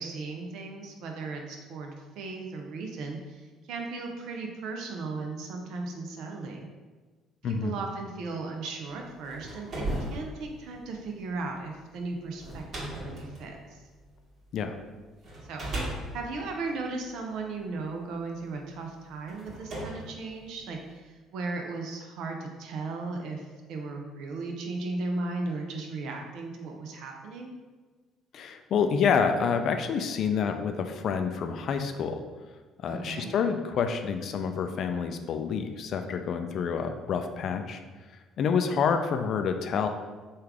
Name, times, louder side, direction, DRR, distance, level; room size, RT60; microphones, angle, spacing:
voice 1, 0.0-6.7 7.4-13.8 15.5-15.7 16.1-27.5 32.9-33.3, right 3 dB, 65° right, 2 dB, 0.5 m, -36 dB
voice 2, 7.4-7.7 14.5-14.8 28.3-32.2 32.8-37.8 38.4-39.9, left 6 dB, 60° left, 7 dB, 0.3 m, -28 dB
sound 1, 9.0-14.6 15.2-17.7 18.5-18.6 19.3-21.0, right 1 dB, 50° right, 1.2 m, -38 dB
3.2 x 2.4 x 3.5 m, 1.3 s
hypercardioid pair, 55°, 0 cm